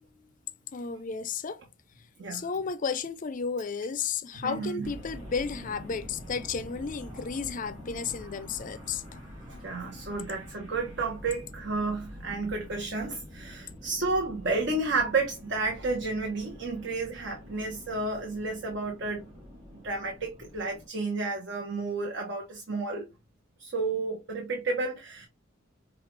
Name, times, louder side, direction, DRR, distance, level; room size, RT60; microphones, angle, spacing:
voice 1, 0.7-1.6 2.3-9.2, left 5 dB, 40° left, 0.5 m, -33 dB
voice 2, 4.4-4.9 9.5-19.3 19.8-23.1 23.6-25.3, right 3 dB, 60° right, 1.0 m, -31 dB
sound 1, 4.8-20.9, equal, 40° right, 3.1 m, -46 dB
5.7 x 2.4 x 3.2 m
head